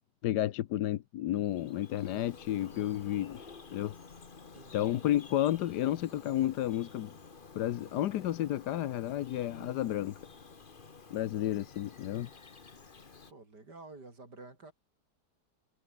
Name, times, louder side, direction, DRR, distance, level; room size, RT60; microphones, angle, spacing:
voice 1, 0.2-3.9 4.7-7.1 7.5-10.2 11.1-12.3, left 13 dB, 75° left, 1.3 m, -32 dB
Bird vocalization bird call bird song, 1.3-13.3, left 4 dB, 30° left, 1.6 m, -52 dB
voice 2, 4.5-5.0 13.3-14.7, right 3 dB, 75° right, 5.6 m, -50 dB
omnidirectional pair, 1.8 m